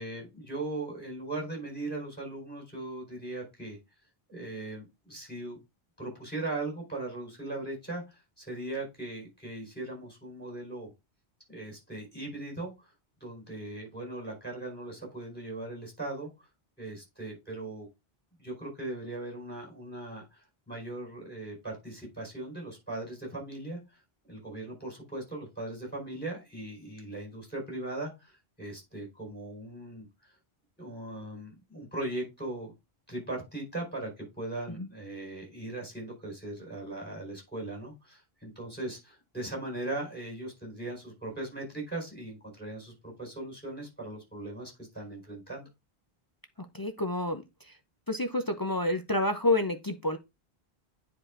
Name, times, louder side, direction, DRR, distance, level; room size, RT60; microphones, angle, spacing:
voice 1, 0.0-3.8 4.3-5.6 6.0-10.9 11.5-12.9 13.2-16.5 16.8-17.9 18.4-24.0 24.3-30.3 30.8-32.7 33.1-45.7, right 2 dB, 10° left, 4.1 m, -39 dB
voice 2, 46.7-47.7 48.1-50.2, left 2 dB, 35° left, 0.3 m, -29 dB
9.9 x 4.7 x 2.4 m
omnidirectional pair, 1.1 m